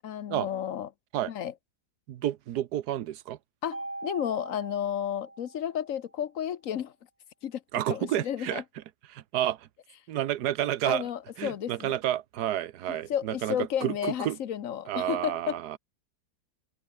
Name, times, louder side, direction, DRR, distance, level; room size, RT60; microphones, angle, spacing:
voice 1, 0.0-0.9 1.3-1.5 3.6-6.9 7.4-7.6 7.9-8.6 10.8-12.0 13.1-15.6, left 9 dB, 60° left, 1.2 m, -32 dB
voice 2, 2.1-3.4 7.7-8.6 9.1-9.7 10.1-11.1 11.4-14.4 14.9-15.8, right 12 dB, 75° right, 1.4 m, -30 dB
Mallet percussion, 3.7-6.0, right 2 dB, 60° right, 7.1 m, -41 dB
omnidirectional pair, 1.7 m